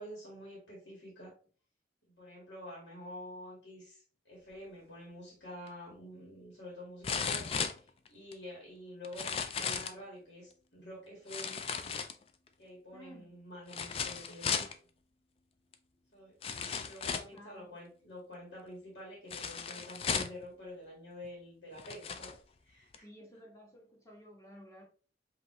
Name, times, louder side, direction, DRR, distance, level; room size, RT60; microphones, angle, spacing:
voice 1, 0.0-1.4 2.1-11.6 12.6-14.7 16.1-16.3 16.8-23.1, equal, 80° left, 1.8 m, -48 dB
sound 1, 5.7-5.8 7.0-8.3 9.0-10.0 11.3-12.5 13.7-14.7 15.7-15.8 16.4-17.4 19.3-20.4 21.2-21.3 21.8-22.4 22.9-23.0, left 6 dB, 35° left, 0.3 m, -36 dB
voice 2, 12.9-13.3 17.3-17.7 23.0-24.8, equal, 15° left, 1.4 m, -54 dB
5.2 x 2.9 x 2.9 m
head